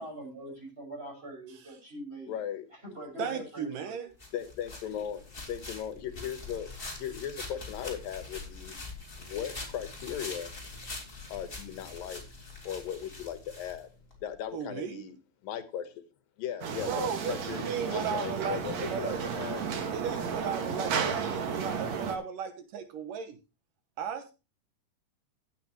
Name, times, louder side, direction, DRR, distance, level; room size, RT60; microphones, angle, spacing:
voice 1, 0.0-2.4 2.7-3.9, right 1 dB, 15° right, 6.2 m, -43 dB
voice 2, 2.3-2.6 4.3-6.7 6.9-8.7 9.2-10.5 11.3-12.2 12.6-13.9 14.2-15.2 15.4-16.0 16.4-19.6, left 9 dB, 80° left, 2.9 m, -37 dB
voice 3, 3.2-4.1 14.5-15.0 16.9-19.3 19.9-23.4 24.0-24.3, right 8 dB, 70° right, 2.6 m, -35 dB
sound 1, 4.2-14.2, left 3 dB, 15° left, 3.2 m, -44 dB
sound 2, 16.6-22.2, right 6 dB, 55° right, 2.7 m, -33 dB
15.5 x 9.2 x 3.0 m
omnidirectional pair, 4.0 m